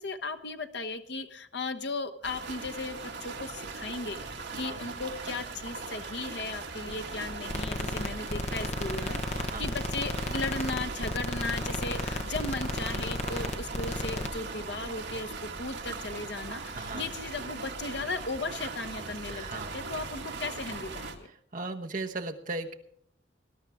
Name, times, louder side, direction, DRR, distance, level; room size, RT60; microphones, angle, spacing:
voice 1, 0.0-4.2 4.5-21.3, left 3 dB, 65° left, 8 dB, 1.0 m, -36 dB
sound 1, 2.2-21.2, right 4 dB, 70° right, 2.1 m, -39 dB
sound 2, 7.5-14.3, left 1 dB, 40° left, 1.1 m, -33 dB
voice 2, 16.7-17.1 19.3-20.0 21.5-22.7, right 3 dB, 45° right, 3 dB, 1.2 m, -37 dB
20.0 x 12.0 x 3.6 m, 0.66 s
head